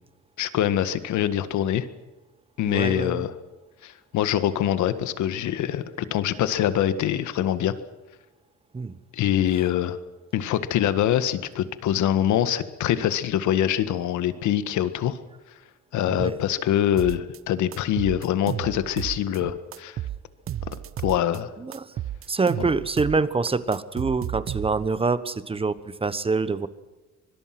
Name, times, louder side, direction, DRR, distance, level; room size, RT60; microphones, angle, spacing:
voice 1, 0.4-1.9 2.6-3.3 3.8-7.7 9.1-10.0 10.3-15.2 15.9-20.0 21.0-21.5, left 11 dB, 80° left, 12 dB, 1.7 m, -24 dB
voice 2, 2.6-3.2 8.7-8.9 16.1-16.4 21.6-21.9 22.3-26.7, right 4 dB, 20° right, 14 dB, 1.2 m, -26 dB
sound 1, 17.0-17.4 17.7-19.4 19.7-21.4 21.7-23.2 23.5-25.0, right 11 dB, 50° right, 0.8 m, -33 dB
24.5 x 21.5 x 6.1 m, 1.1 s
cardioid pair, 120°, 29 cm